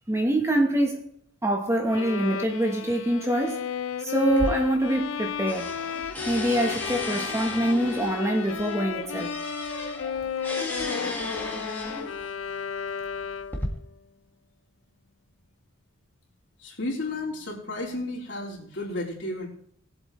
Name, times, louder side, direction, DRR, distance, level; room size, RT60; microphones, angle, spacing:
voice 1, 0.1-1.0 1.4-3.6 4.0-5.7 6.3-9.3, right 1 dB, 15° right, 1.1 m, -25 dB
Bowed string instrument, 1.9-13.7, left 7 dB, 85° left, 0.5 m, -33 dB
sound 1, 4.3-5.2 5.5-12.3 13.0-13.7, left 1 dB, 10° left, 1.8 m, -35 dB
voice 2, 16.6-19.5, left 2 dB, 60° left, 3.8 m, -32 dB
21.5 x 8.0 x 3.2 m
head